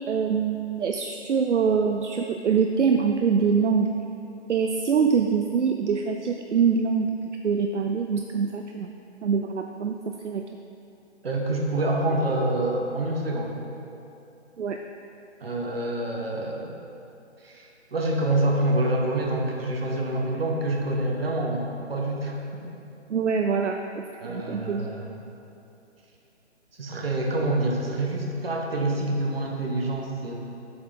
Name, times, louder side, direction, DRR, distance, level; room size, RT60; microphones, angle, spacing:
voice 1, 0.0-3.9 4.5-7.1 7.4-8.9 9.2-9.9 10.2-10.4 14.6-14.8 23.1-23.8 24.2-24.9, right 6 dB, 75° right, 4 dB, 0.5 m, -24 dB
voice 2, 11.2-13.5 15.4-16.7 17.4-22.7 24.2-25.2 26.8-30.3, right 1 dB, 55° right, 0 dB, 1.3 m, -27 dB
7.8 x 5.7 x 4.0 m, 2.8 s
figure-of-eight pair, 150°, 35 cm